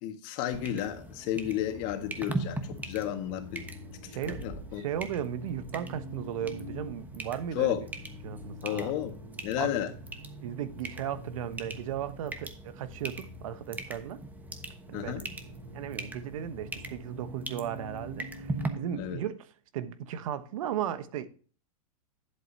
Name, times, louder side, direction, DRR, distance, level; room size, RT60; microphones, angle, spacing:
voice 1, 0.0-3.6 4.3-4.8 7.5-7.8 8.6-9.2 9.4-9.9 14.9-15.2 19.0-19.2, left 11 dB, 45° left, 1.7 m, -32 dB
sound 1, 0.5-18.7, right 2 dB, 10° right, 1.1 m, -41 dB
Accelerating revving vroom, 1.7-19.1, right 2 dB, 85° right, 4.4 m, -46 dB
voice 2, 4.7-7.8 8.2-8.9 9.6-9.7 10.4-14.2 14.9-15.2 15.7-21.3, right 10 dB, 65° right, 1.1 m, -36 dB
11.5 x 7.8 x 2.8 m
hypercardioid pair, 125°, 18 cm